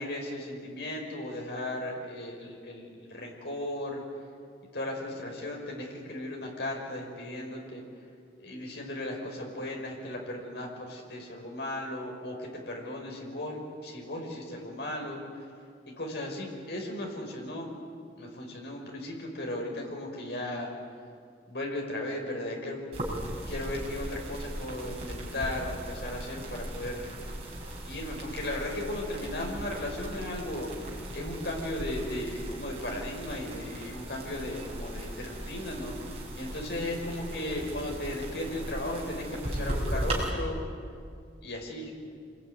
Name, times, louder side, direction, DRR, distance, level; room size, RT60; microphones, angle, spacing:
voice 1, 0.0-4.0 4.7-7.8 8.4-15.2 15.9-17.7 18.2-20.7 21.5-23.2 23.5-27.1 27.9-40.6 41.4-41.9, left 1 dB, 65° left, 0 dB, 5.5 m, -36 dB
sound 1, 22.9-40.3, right 1 dB, 35° right, 5.9 m, -38 dB
27.0 x 21.0 x 9.6 m, 2.3 s
head